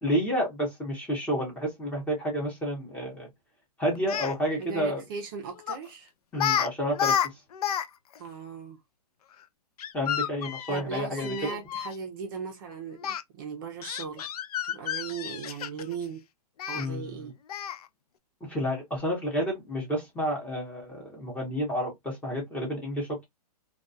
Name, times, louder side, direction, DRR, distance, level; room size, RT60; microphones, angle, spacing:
voice 1, 0.0-3.3 3.8-5.0 6.3-7.4 9.9-11.6 16.7-17.3 18.4-23.3, equal, 5° left, 0.7 m, -30 dB
Speech, 3.9-4.3 5.7-5.9 6.3-6.7 6.9-7.9 8.1-8.2 9.8-11.9 13.0-13.2 13.8-16.0 16.6-16.9 17.5-17.8, left 9 dB, 65° left, 0.4 m, -30 dB
voice 2, 4.6-6.1 8.2-8.8 10.7-14.3 14.6-16.2 16.7-17.3, right 6 dB, 35° right, 0.5 m, -38 dB
2.2 x 2.2 x 2.5 m
hypercardioid pair, 155°, 21 cm